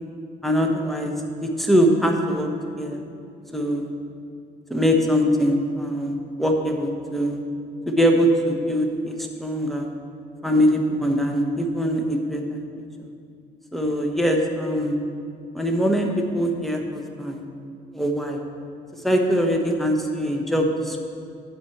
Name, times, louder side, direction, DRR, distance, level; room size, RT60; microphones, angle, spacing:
voice 1, 0.4-1.1 1.4-2.5 2.8-3.0 3.5-3.9 4.7-7.4 7.9-9.9 10.4-12.6 13.7-15.0 15.5-17.4 17.9-18.4 19.0-21.0, equal, ahead, 2 dB, 1.0 m, -22 dB
9.5 x 4.5 x 7.1 m, 2.4 s
cardioid pair, 110°, 17 cm